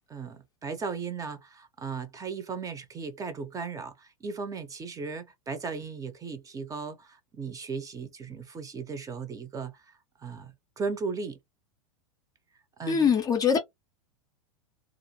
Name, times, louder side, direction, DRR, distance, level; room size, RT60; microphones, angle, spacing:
voice 1, 0.1-9.7 10.2-11.4 12.8-13.2, right 5 dB, 20° right, 0.7 m, -36 dB
voice 2, 12.9-13.6, left 6 dB, 20° left, 0.5 m, -22 dB
2.5 x 2.4 x 2.8 m
hypercardioid pair, 95°, 17 cm